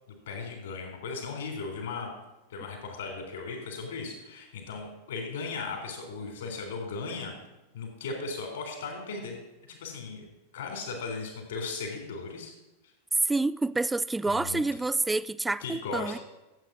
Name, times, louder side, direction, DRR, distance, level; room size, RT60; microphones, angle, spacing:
voice 1, 0.3-2.1 2.5-7.3 7.7-9.4 9.7-10.2 10.5-12.5 14.3-14.6 15.6-16.2, left 4 dB, 60° left, 3.7 m, -37 dB
voice 2, 13.2-16.2, right 2 dB, 10° right, 0.3 m, -28 dB
13.5 x 8.4 x 6.2 m
figure-of-eight pair, 90°, 0 cm